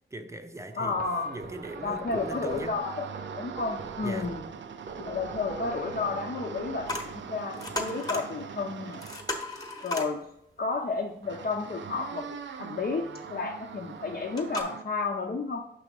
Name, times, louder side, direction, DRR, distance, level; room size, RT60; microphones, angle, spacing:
voice 1, 0.1-1.0 1.2-2.8 4.0-4.3, right 1 dB, 15° right, 7 dB, 0.6 m, -39 dB
sound 1, 0.7-9.6 11.2-14.8, right 7 dB, 85° right, 0.4 m, -42 dB
voice 2, 0.8-1.3 1.8-4.4 5.0-9.0 9.8-10.2 10.6-15.7, left 4 dB, 55° left, 0 dB, 0.7 m, -32 dB
sound 2, 0.8-7.4, right 3 dB, 55° right, 0.8 m, -44 dB
sound 3, 6.9-7.1 7.4-8.3 8.6-8.7 8.9-10.1 13.8-13.9 14.4-14.6, left 2 dB, 20° left, 1.0 m, -34 dB
6.0 x 3.4 x 5.3 m, 0.77 s
wide cardioid pair, 95°, 19 cm